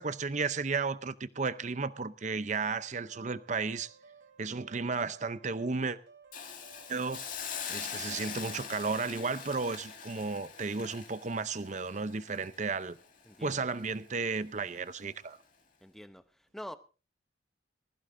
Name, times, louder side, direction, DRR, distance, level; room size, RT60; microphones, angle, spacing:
voice 1, 0.0-3.9 4.4-6.0 6.9-7.2 7.7-13.0 13.4-15.4, right 4 dB, 40° right, 0.6 m, -33 dB
sound 1, 2.5-8.5, right 5 dB, 75° right, 2.7 m, -57 dB
Hiss, 6.3-13.4 13.7-13.9, left 7 dB, 45° left, 2.2 m, -43 dB
voice 2, 13.3-13.6 15.8-16.2 16.5-16.8, equal, ahead, 0.7 m, -45 dB
20.5 x 15.0 x 2.6 m
head